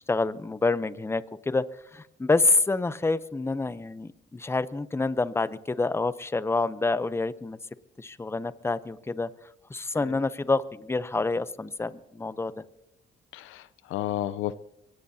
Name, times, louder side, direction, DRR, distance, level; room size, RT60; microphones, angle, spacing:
voice 1, 0.1-1.6 1.9-7.6 8.0-9.3 9.7-12.5, left 3 dB, 10° left, 15 dB, 0.7 m, -27 dB
voice 2, 13.3-14.5, left 12 dB, 90° left, 15 dB, 0.6 m, -32 dB
23.5 x 18.5 x 2.8 m, 0.83 s
cardioid pair, 90°, 20 cm